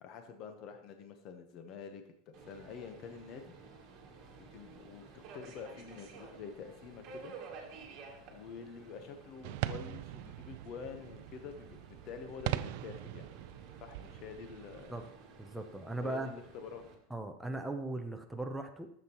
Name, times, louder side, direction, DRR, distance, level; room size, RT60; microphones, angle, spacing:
voice 1, 0.0-3.5 4.4-7.4 8.3-13.3 13.8-14.9 16.0-16.9, left 6 dB, 35° left, 6 dB, 0.9 m, -47 dB
Subway metro underground, 2.3-16.9, right 4 dB, 30° right, 1.6 m, -53 dB
sound 1, 9.4-15.1, right 14 dB, 50° right, 0.3 m, -41 dB
voice 2, 15.4-16.3 17.1-18.9, right 2 dB, ahead, 3 dB, 0.6 m, -38 dB
13.0 x 7.2 x 3.0 m, 0.72 s
supercardioid pair, 175°, 0 cm